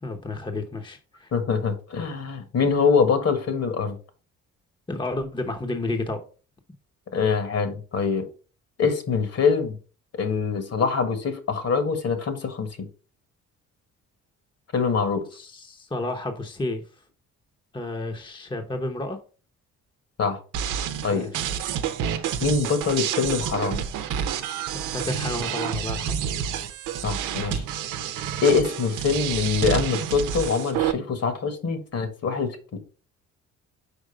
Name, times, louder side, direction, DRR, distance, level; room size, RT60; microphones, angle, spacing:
voice 1, 0.0-1.3 4.9-6.2 15.3-16.8 17.7-19.2 21.1-21.4 24.7-26.2, left 2 dB, 15° left, 0.9 m, -31 dB
voice 2, 1.3-3.9 7.1-8.2 8.8-9.7 10.1-12.9 14.7-15.2 20.2-20.4 21.0-21.3 22.4-23.8 27.0-27.6 28.4-32.6, left 5 dB, 55° left, 1.6 m, -24 dB
sound 1, 20.5-30.9, right 9 dB, 90° right, 0.7 m, -29 dB
5.3 x 4.7 x 5.0 m
cardioid pair, 90°, 30 cm